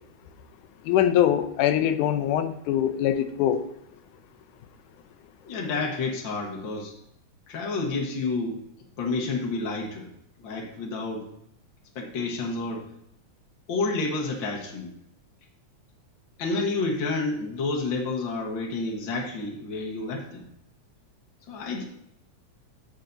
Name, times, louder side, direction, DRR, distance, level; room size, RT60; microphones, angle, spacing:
voice 1, 0.8-3.7, left 10 dB, 85° left, 9 dB, 2.1 m, -23 dB
voice 2, 5.5-6.9 7.5-8.6 9.0-10.1 10.4-11.3 11.9-12.8 13.7-14.9 16.4-20.4 21.5-21.9, left 3 dB, 55° left, 0 dB, 1.4 m, -29 dB
15.0 x 5.7 x 2.6 m, 0.77 s
omnidirectional pair, 3.5 m